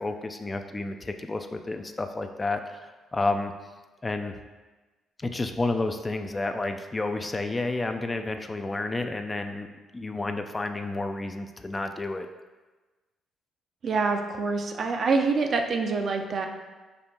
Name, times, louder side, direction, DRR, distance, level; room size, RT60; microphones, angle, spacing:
voice 1, 0.0-2.9 3.1-3.5 4.0-4.3 5.2-9.7 9.9-12.3, left 2 dB, 25° left, 6 dB, 0.3 m, -30 dB
voice 2, 13.8-16.5, right 4 dB, 55° right, 4 dB, 0.4 m, -26 dB
5.2 x 2.5 x 2.7 m, 1.2 s
supercardioid pair, 55°, 0 cm